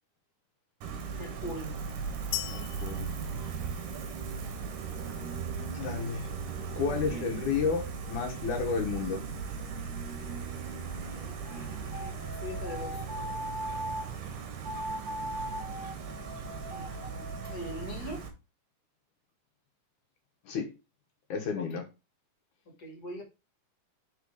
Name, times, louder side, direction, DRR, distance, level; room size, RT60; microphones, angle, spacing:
Gull seagull, 0.8-18.3, right 5 dB, 75° right, 3.0 m, -38 dB
voice 1, 1.2-1.7 7.1-7.2 11.0-13.0 16.7-18.3 21.6-21.8 22.8-23.2, left 1 dB, 35° left, 1.9 m, -42 dB
sound 1, 2.3-4.3, left 17 dB, 90° left, 2.2 m, -39 dB
voice 2, 2.5-3.1 5.1-5.2 5.7-6.3 6.8-9.2 20.5-20.7 21.3-21.8, left 5 dB, 70° left, 2.5 m, -32 dB
sound 2, 11.9-14.1 14.6-18.0, equal, 35° right, 3.3 m, -39 dB
6.8 x 4.4 x 4.9 m
omnidirectional pair, 3.9 m